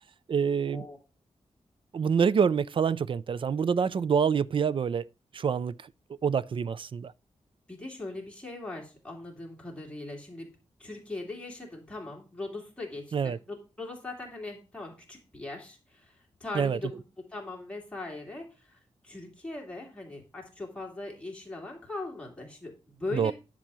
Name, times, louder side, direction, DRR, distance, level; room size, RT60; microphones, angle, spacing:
voice 1, 0.3-0.9 1.9-5.9 6.2-7.1 13.1-13.4 16.5-16.8 23.1-23.3, right 6 dB, 50° right, 0.4 m, -26 dB
voice 2, 7.7-10.5 10.8-23.3, left 2 dB, 10° left, 2.6 m, -40 dB
10.0 x 3.7 x 6.8 m
wide cardioid pair, 175°, 12 cm